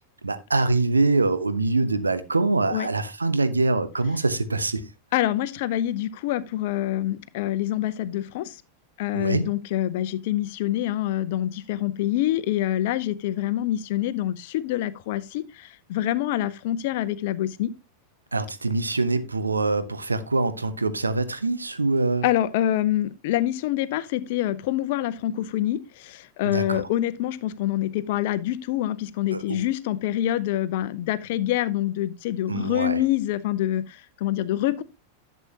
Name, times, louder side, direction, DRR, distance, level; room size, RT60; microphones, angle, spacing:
voice 1, 0.2-4.8 9.1-9.5 18.3-22.3 26.4-26.8 29.3-29.6 32.5-33.0, right 3 dB, 80° right, 0.9 m, -24 dB
voice 2, 5.1-8.6 9.0-17.7 22.2-34.8, left 13 dB, 50° left, 0.7 m, -26 dB
11.5 x 7.4 x 2.9 m
figure-of-eight pair, 90°, 0 cm